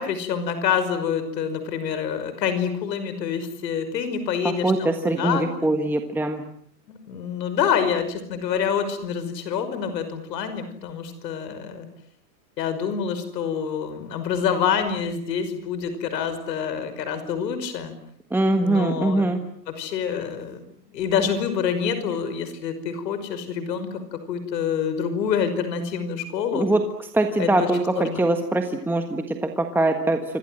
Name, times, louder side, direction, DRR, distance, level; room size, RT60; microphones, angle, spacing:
voice 1, 0.0-5.7 6.9-11.9 12.6-17.9 18.5-19.3 19.7-20.6 20.9-26.7 27.4-27.7 28.0-28.3, left 7 dB, 80° left, 10 dB, 5.7 m, -27 dB
voice 2, 4.4-6.4 18.3-19.4 26.5-30.2, right 2 dB, 5° right, 6 dB, 1.5 m, -22 dB
27.5 x 26.0 x 7.8 m, 0.67 s
supercardioid pair, 150°, 49 cm